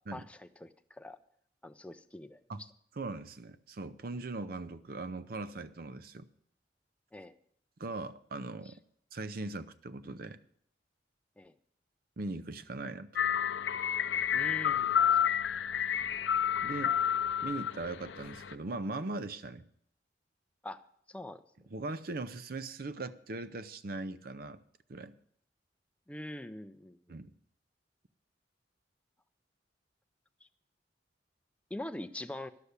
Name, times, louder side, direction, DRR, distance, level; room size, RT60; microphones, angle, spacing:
voice 1, 0.1-1.2 1.6-2.7 7.1-7.3 11.4-11.5 14.3-15.2 20.6-20.8 21.1-21.4 26.1-27.2 31.7-32.5, left 1 dB, 5° left, 0.5 m, -43 dB
voice 2, 3.0-6.3 7.8-8.7 9.1-10.4 12.2-13.1 16.6-17.0 17.4-19.7 21.7-24.6 24.9-25.2 27.1-27.3, right 2 dB, 55° right, 0.6 m, -39 dB
sound 1, 13.2-18.5, left 9 dB, 90° left, 0.5 m, -30 dB
11.5 x 6.8 x 8.1 m
head